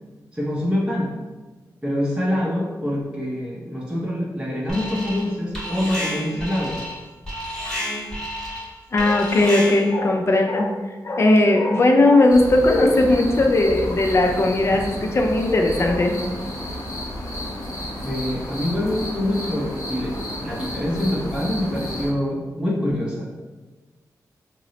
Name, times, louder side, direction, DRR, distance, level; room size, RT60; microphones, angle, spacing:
voice 1, 0.3-1.1 1.8-6.8 18.0-20.1 20.4-23.3, left 1 dB, 15° right, -6 dB, 0.6 m, -25 dB
Alarm, 4.7-5.3 5.5-10.0, equal, 5° left, 0.9 m, -31 dB
voice 2, 8.9-16.2, left 2 dB, 40° left, 2 dB, 0.4 m, -18 dB
sound 1, 12.3-22.1, left 1 dB, 60° left, 0.7 m, -31 dB
2.9 x 2.0 x 3.8 m, 1.2 s
wide cardioid pair, 105°, 7 cm